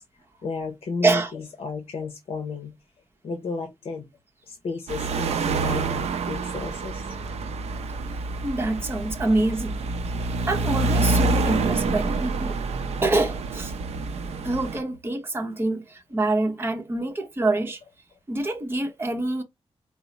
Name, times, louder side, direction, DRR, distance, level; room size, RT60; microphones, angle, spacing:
voice 1, 0.4-2.7 3.2-4.1 4.5-7.1, left 4 dB, 65° left, 0.7 m, -33 dB
sound 1, 4.9-14.8, right 3 dB, 85° right, 0.5 m, -27 dB
voice 2, 8.4-9.8 10.5-12.6 13.0-13.7 14.4-17.8 18.3-19.4, right 2 dB, 20° right, 0.8 m, -25 dB
4.5 x 2.0 x 4.0 m
wide cardioid pair, 120°, 11 cm